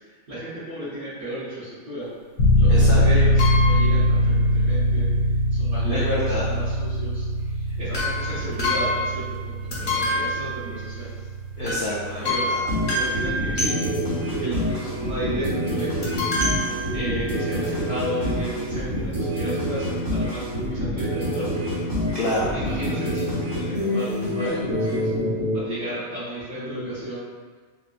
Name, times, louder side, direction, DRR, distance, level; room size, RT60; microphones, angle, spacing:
voice 1, 0.3-2.1 2.5-5.1 5.5-7.2 7.8-11.1 12.2-12.5 12.9-13.9 14.4-16.1 16.9-21.6 22.5-25.1 25.5-27.3, right 1 dB, 60° right, -15 dB, 1.5 m, -33 dB
sound 1, 2.4-16.8, equal, 90° left, 1.1 m, -23 dB
voice 2, 2.7-3.0 5.9-6.4 11.6-12.6 17.6-17.7 22.1-22.5, left 1 dB, 70° left, -7 dB, 0.5 m, -27 dB
sound 2, 3.4-4.1 7.9-9.4 9.7-11.2 11.7-11.9 12.2-14.2 16.0-17.5 18.2-18.3 18.5-18.6, left 1 dB, 40° left, 0.9 m, -27 dB
sound 3, 12.7-25.6, equal, 25° right, 0.6 m, -27 dB
3.7 x 2.3 x 2.4 m, 1.5 s
omnidirectional pair, 1.4 m